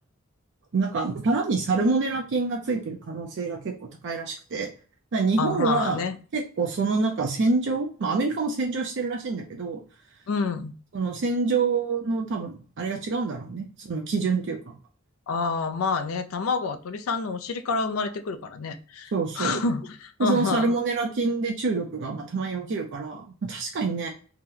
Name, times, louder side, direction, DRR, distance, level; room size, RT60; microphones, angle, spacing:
voice 1, 0.7-4.7 5.1-6.0 6.3-9.8 10.9-14.7 19.1-19.6 20.2-24.1, right 3 dB, 60° right, 0.5 m, -26 dB
voice 2, 5.4-6.2 10.3-10.7 15.3-20.8, left 4 dB, 75° left, 0.4 m, -28 dB
2.9 x 2.1 x 3.6 m
head